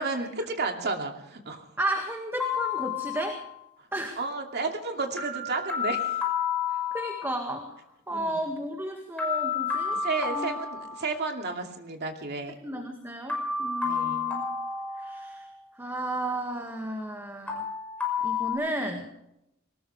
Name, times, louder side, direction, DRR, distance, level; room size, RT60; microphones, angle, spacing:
voice 1, 0.0-1.7 4.2-6.2 8.1-8.4 9.9-12.5 13.8-14.3, right 3 dB, 55° right, 3 dB, 2.6 m, -32 dB
voice 2, 1.8-3.4 3.9-4.2 6.9-7.7 8.1-10.0 10.3-10.6 12.6-14.4 15.0-15.5 15.8-17.6 18.2-19.1, right 1 dB, 10° right, 3 dB, 1.9 m, -33 dB
sound 1, 2.4-3.5 5.2-7.5 9.2-11.5 13.3-15.6 17.5-18.5, left 6 dB, 5° left, 5.6 m, -31 dB
22.0 x 19.5 x 3.4 m, 0.83 s
head